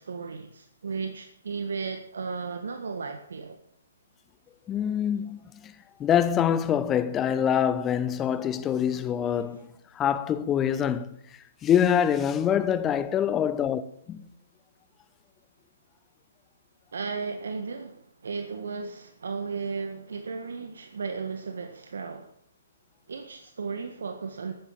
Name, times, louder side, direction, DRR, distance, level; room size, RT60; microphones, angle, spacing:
voice 1, 0.0-3.6 9.3-9.5 16.9-22.3 23.1-24.5, right 5 dB, 65° right, 1.6 m, -35 dB
voice 2, 4.7-5.7 6.0-9.7 9.9-11.1 11.6-13.8 14.1-14.2, left 9 dB, 20° left, 1.0 m, -25 dB
14.0 x 9.6 x 7.5 m
figure-of-eight pair, 130°, 0 cm